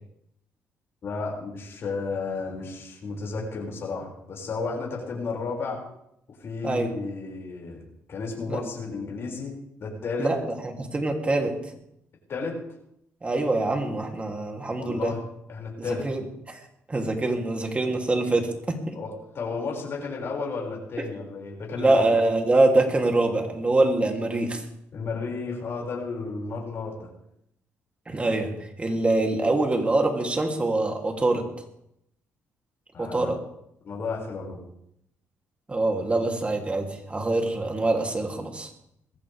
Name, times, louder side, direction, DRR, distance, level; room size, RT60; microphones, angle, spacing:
voice 1, 1.0-5.8 6.4-7.8 8.1-9.5 9.8-10.3 12.3-12.5 14.8-15.2 15.5-16.1 18.9-22.1 24.9-27.1 32.9-33.3 33.8-34.6, left 4 dB, 50° left, -2 dB, 6.4 m, -32 dB
voice 2, 10.2-11.5 13.2-15.1 15.8-16.6 16.9-19.0 21.0-21.1 21.8-24.6 28.1-31.5 33.0-33.4 35.7-38.7, right 2 dB, 25° right, 2 dB, 3.2 m, -24 dB
21.0 x 15.0 x 3.6 m, 0.76 s
cardioid pair, 95°, 5 cm